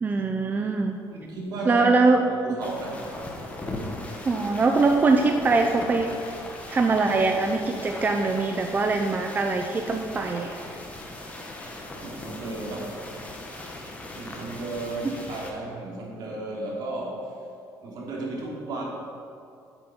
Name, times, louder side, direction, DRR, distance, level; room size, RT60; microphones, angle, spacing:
voice 1, 0.0-1.0 1.7-2.2 4.3-6.2 6.7-10.6 15.0-15.1, right 3 dB, 25° right, 4 dB, 0.5 m, -22 dB
voice 2, 1.1-1.8 2.4-3.1 12.0-13.0 14.1-17.3 17.8-18.8, right 2 dB, 65° right, -3 dB, 2.8 m, -34 dB
sound 1, 2.6-15.5, left 1 dB, 20° left, 1.5 m, -38 dB
9.3 x 8.0 x 6.0 m, 2.5 s
cardioid pair, 140°, 7 cm